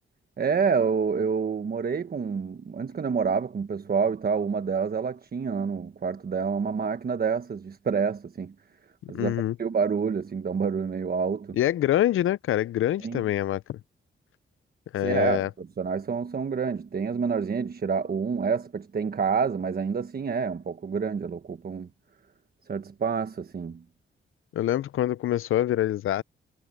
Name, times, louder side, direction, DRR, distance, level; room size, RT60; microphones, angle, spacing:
voice 1, 0.4-8.5 9.1-9.3 9.6-11.6 13.0-13.2 15.0-21.9 22.7-23.8, right 6 dB, 45° right, 1.2 m, -28 dB
voice 2, 9.0-9.6 11.5-13.8 14.9-15.5 24.5-26.2, left 12 dB, 80° left, 0.5 m, -25 dB
cardioid pair, 95°, 21 cm